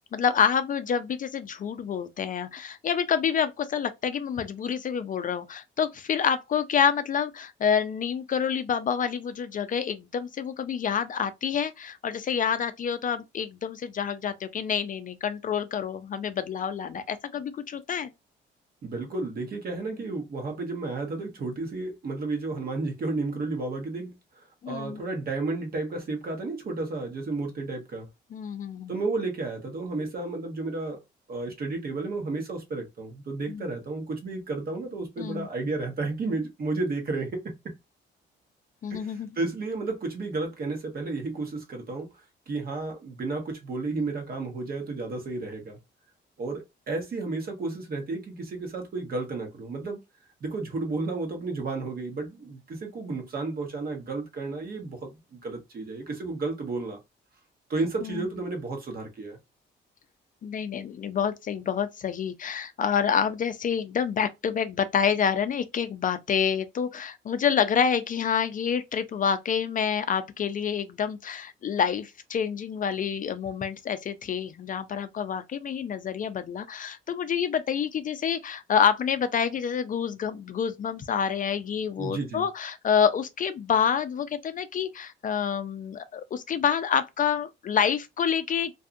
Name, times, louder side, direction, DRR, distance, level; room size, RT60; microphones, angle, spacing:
voice 1, 0.1-18.1 24.6-25.0 28.3-28.9 33.5-33.6 35.2-35.5 38.8-39.3 58.0-58.2 60.4-88.7, left 7 dB, 40° left, 0.4 m, -27 dB
voice 2, 18.8-28.1 28.9-31.0 31.3-37.4 38.9-45.8 46.4-50.0 50.4-57.0 57.7-59.4 82.0-82.4, right 3 dB, 50° right, 1.1 m, -32 dB
2.6 x 2.3 x 2.5 m
cardioid pair, 90°, 20 cm